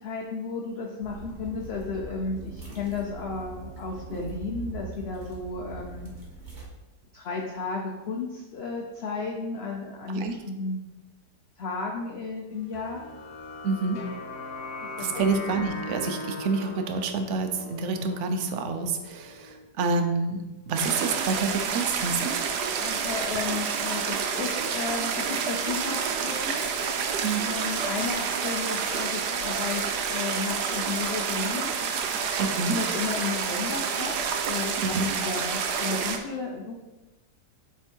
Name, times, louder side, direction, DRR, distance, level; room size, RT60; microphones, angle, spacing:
voice 1, 0.0-6.1 7.1-10.9 11.6-13.0 15.0-15.2 22.8-31.7 32.6-34.1 34.5-36.7, left 4 dB, 55° left, 0 dB, 0.7 m, -33 dB
sound 1, 1.0-6.7, right 3 dB, 30° right, 1.4 m, -41 dB
sound 2, 12.7-19.6, left 3 dB, 75° left, 1.4 m, -39 dB
voice 2, 13.6-14.0 15.0-22.4 27.2-27.5 32.4-32.8 34.8-35.1, right 4 dB, 60° right, 6 dB, 0.8 m, -28 dB
sound 3, 20.8-36.2, right 6 dB, 75° right, 1.2 m, -29 dB
7.7 x 3.6 x 4.5 m, 1.1 s
omnidirectional pair, 1.8 m